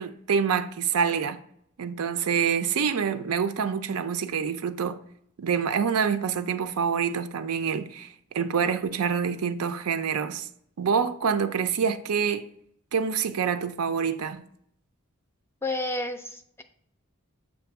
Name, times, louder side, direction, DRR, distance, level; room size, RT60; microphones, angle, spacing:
voice 1, 0.0-1.4 1.8-5.0 5.4-10.5 10.8-12.5 12.9-14.4, right 6 dB, 90° right, 0.5 m, -26 dB
voice 2, 15.6-16.6, left 2 dB, 10° left, 0.3 m, -31 dB
7.4 x 2.6 x 5.8 m
head